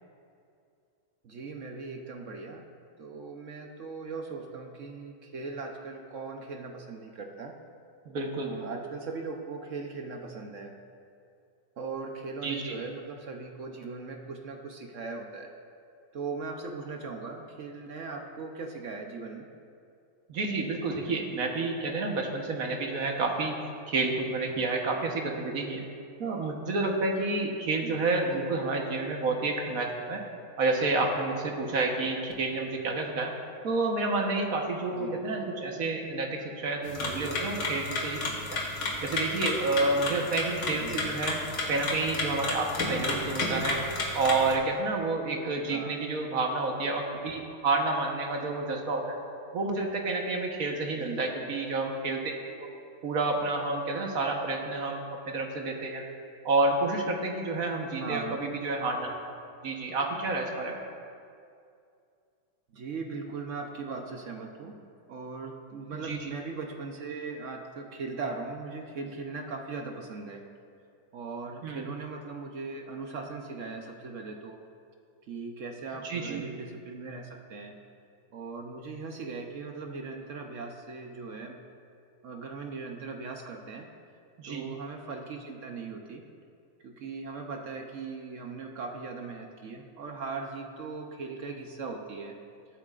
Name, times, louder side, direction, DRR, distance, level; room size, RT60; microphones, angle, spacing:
voice 1, 1.2-2.7 3.0-7.6 8.4-10.7 11.8-15.5 16.1-19.5 27.8-28.1 34.9-35.3 40.7-41.1 45.7-46.0 51.0-51.5 58.0-58.4 62.7-64.8 65.1-70.4 71.1-74.6 75.3-77.7 78.3-81.6 82.2-83.9 84.4-86.3 86.8-92.4, right 4 dB, 70° right, 2 dB, 0.7 m, -39 dB
voice 2, 8.1-8.6 12.4-12.8 20.3-23.6 23.9-25.9 26.2-30.2 30.6-33.3 33.6-38.2 38.5-38.6 39.0-41.4 41.7-43.8 44.1-49.1 49.5-52.3 52.6-52.7 53.0-56.1 56.4-59.1 59.6-60.8 65.9-66.3 71.6-71.9 76.0-76.4 84.4-84.7, right 3 dB, 50° right, 1 dB, 1.4 m, -29 dB
sound 1, 36.8-44.5, left 2 dB, 60° left, 2.2 m, -32 dB
20.5 x 8.6 x 2.5 m, 2.4 s
omnidirectional pair, 2.2 m